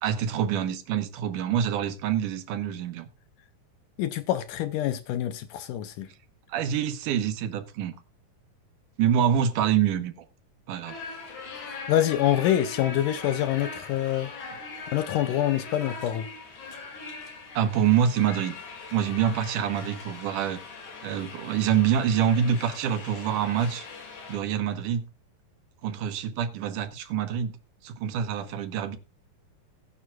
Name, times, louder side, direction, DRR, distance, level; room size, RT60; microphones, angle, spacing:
voice 1, 0.0-3.1 6.5-7.9 9.0-10.1 10.7-11.0 17.6-18.6 18.9-20.6 21.0-23.9 24.3-25.0 25.8-27.6 27.8-29.0, right 9 dB, 70° right, 2.4 m, -26 dB
voice 2, 4.0-6.1 11.6-14.3 14.9-16.3, left 12 dB, 80° left, 2.0 m, -26 dB
sound 1, 10.8-24.4, left 4 dB, 55° left, 3.7 m, -41 dB
20.0 x 9.4 x 2.3 m
omnidirectional pair, 4.1 m